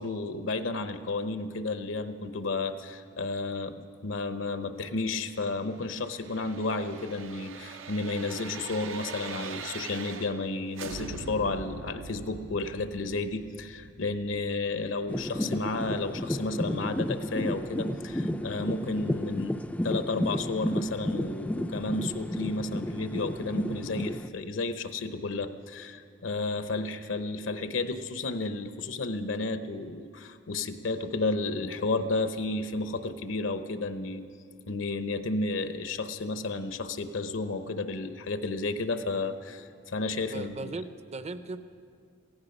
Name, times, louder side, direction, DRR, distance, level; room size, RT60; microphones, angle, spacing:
voice 1, 0.0-34.2 34.7-40.7, left 3 dB, 70° left, 10 dB, 0.8 m, -32 dB
sound 1, 5.7-10.5 10.8-15.6 16.0-16.1, right 4 dB, 75° right, 0.7 m, -43 dB
sound 2, 15.1-24.3, left 1 dB, 5° left, 0.4 m, -32 dB
voice 2, 40.2-41.6, right 3 dB, 35° right, 11 dB, 0.6 m, -38 dB
17.0 x 15.5 x 5.4 m, 2.2 s
head